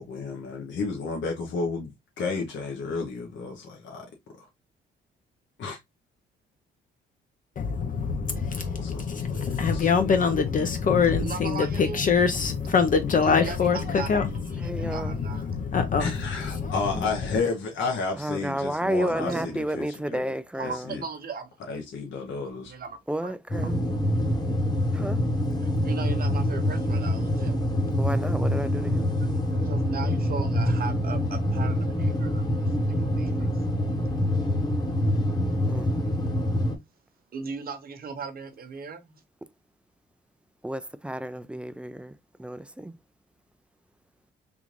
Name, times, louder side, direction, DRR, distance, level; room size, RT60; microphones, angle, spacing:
voice 1, 0.0-4.1 4.4-4.5 5.6-5.8 8.5-9.9 16.0-20.3 20.6-21.0 21.7-22.7, left 4 dB, 70° left, 1.0 m, -32 dB
voice 2, 7.6-17.0, left 5 dB, 40° left, 0.6 m, -25 dB
voice 3, 11.2-12.0 13.2-14.2 14.6-15.5 18.6-18.7 19.1-19.4 20.5-21.5 22.6-23.3 23.6-23.7 25.6-27.6 29.2-32.6 33.2-33.5 37.3-39.2, right 5 dB, 50° right, 1.0 m, -37 dB
voice 4, 14.6-15.2 18.2-20.8 23.1-23.7 24.9-25.2 28.0-29.1 35.7-35.9 40.6-42.1 42.4-42.9, right 1 dB, 5° right, 0.3 m, -31 dB
sound 1, 23.5-36.7, left 1 dB, 20° left, 1.1 m, -25 dB
3.5 x 2.5 x 3.0 m
cardioid pair, 90°, 20 cm